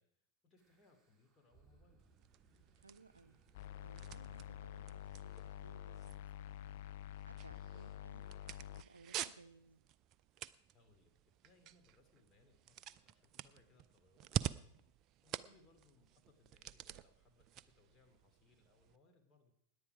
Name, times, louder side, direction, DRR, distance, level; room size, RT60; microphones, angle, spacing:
voice 1, 0.0-2.0 10.7-11.1 11.4-14.7 15.2-19.5, left 3 dB, 20° left, 4 dB, 3.0 m, -70 dB
sound 1, 0.6-6.5, right 4 dB, 10° right, 3.2 m, -69 dB
sound 2, 2.0-19.0, right 11 dB, 35° right, 0.5 m, -48 dB
voice 2, 2.7-3.4 3.8-6.8 7.3-9.8 15.4-15.7, right 3 dB, 80° right, 14 dB, 0.6 m, -62 dB
sound 3, 3.5-8.8, left 11 dB, 50° left, 0.5 m, -49 dB
17.5 x 10.0 x 4.9 m, 0.71 s
figure-of-eight pair, 90°, 0 cm